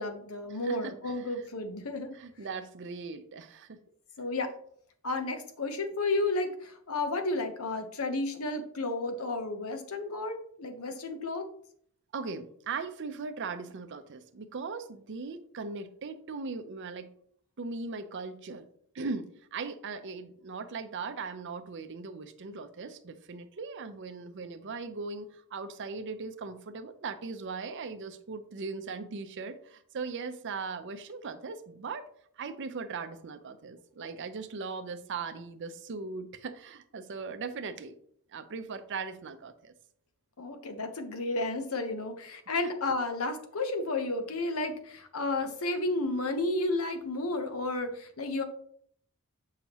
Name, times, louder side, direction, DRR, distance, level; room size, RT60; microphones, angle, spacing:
voice 1, 0.0-2.2 4.2-4.5 5.0-11.5 40.4-48.4, left 2 dB, 70° left, 1.0 m, -32 dB
voice 2, 0.6-1.2 2.1-3.8 12.1-17.1 17.6-18.7 18.9-32.1 32.4-38.0 38.3-39.7, right 4 dB, 55° right, 0.6 m, -39 dB
7.0 x 5.7 x 3.0 m
head